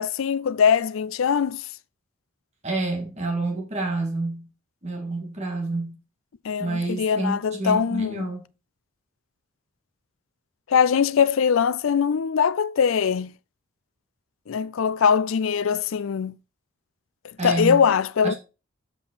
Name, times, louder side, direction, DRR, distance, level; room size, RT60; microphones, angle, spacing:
voice 1, 0.0-1.7 6.4-8.3 10.7-13.3 14.5-16.4 17.2-18.3, left 7 dB, 75° left, 0.4 m, -22 dB
voice 2, 2.6-4.5 4.8-6.0 6.6-8.4 17.4-17.9 18.2-18.4, right 2 dB, 30° right, 2.0 m, -28 dB
7.4 x 5.3 x 4.0 m
head